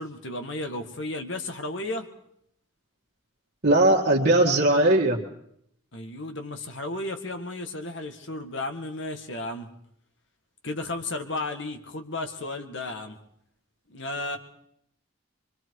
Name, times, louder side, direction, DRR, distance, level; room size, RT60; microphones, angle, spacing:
voice 1, 0.0-2.1 5.9-9.7 10.6-13.2 13.9-14.4, left 2 dB, 65° left, 6 dB, 2.0 m, -33 dB
voice 2, 3.6-5.2, right 1 dB, 50° right, -3 dB, 1.8 m, -19 dB
25.5 x 23.5 x 4.8 m, 0.70 s
head